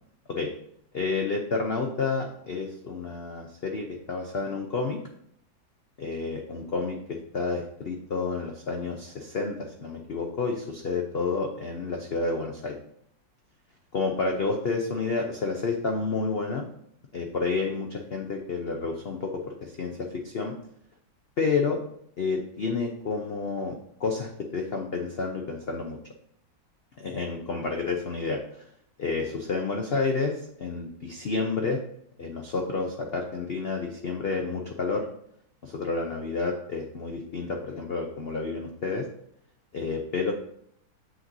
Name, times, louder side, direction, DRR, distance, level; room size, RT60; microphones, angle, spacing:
voice 1, 0.9-5.0 6.0-12.7 13.9-16.7 17.1-20.5 21.4-21.8 22.2-23.7 24.0-26.0 27.0-28.6 29.0-31.8 32.2-35.1 35.6-39.0 39.7-40.3, left 4 dB, 80° left, 2 dB, 0.5 m, -30 dB
7.7 x 6.0 x 2.7 m, 0.68 s
omnidirectional pair, 2.0 m